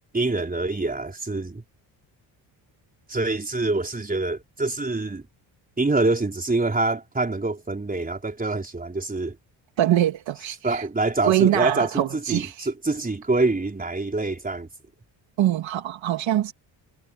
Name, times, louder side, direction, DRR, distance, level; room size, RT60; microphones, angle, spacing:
voice 1, 0.1-1.6 3.1-5.2 5.8-9.4 10.6-14.7, right 3 dB, 20° right, 4.3 m, -25 dB
voice 2, 9.8-10.8 11.2-12.7 15.4-16.5, right 13 dB, 75° right, 2.4 m, -23 dB
cardioid pair, 80°, 46 cm